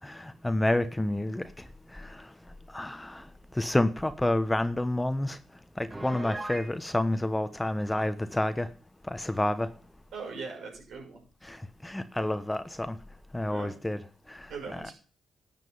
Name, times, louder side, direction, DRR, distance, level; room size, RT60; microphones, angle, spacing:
voice 1, 0.0-8.7 9.0-9.8 11.4-13.0 13.3-14.0 14.3-14.9, left 1 dB, 10° left, 11 dB, 1.1 m, -30 dB
Piano, 5.9-6.7, right 2 dB, 25° right, 2.2 m, -37 dB
voice 2, 10.1-11.2 13.5-13.7 14.5-14.9, right 4 dB, 75° right, 0 dB, 6.3 m, -40 dB
12.0 x 7.6 x 5.6 m, 0.40 s
supercardioid pair, 55°, 0 cm